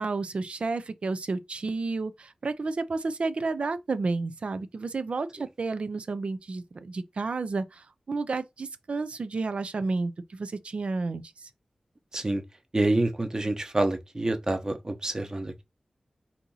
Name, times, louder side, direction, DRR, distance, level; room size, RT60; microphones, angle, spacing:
voice 1, 0.0-11.5, right 3 dB, 70° right, 0.5 m, -31 dB
voice 2, 12.7-15.6, right 2 dB, 35° right, 0.9 m, -27 dB
4.2 x 2.7 x 4.0 m
wide cardioid pair, 70°, 2 cm